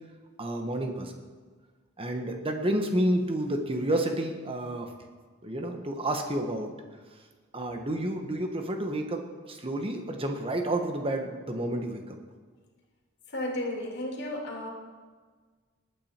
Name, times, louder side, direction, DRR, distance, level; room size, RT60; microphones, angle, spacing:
voice 1, 0.4-1.1 2.0-4.9 5.4-6.7 7.5-12.2, right 1 dB, 25° right, 4 dB, 1.2 m, -30 dB
voice 2, 13.3-14.7, left 1 dB, 55° left, -1 dB, 2.8 m, -33 dB
20.0 x 9.1 x 4.4 m, 1.5 s
head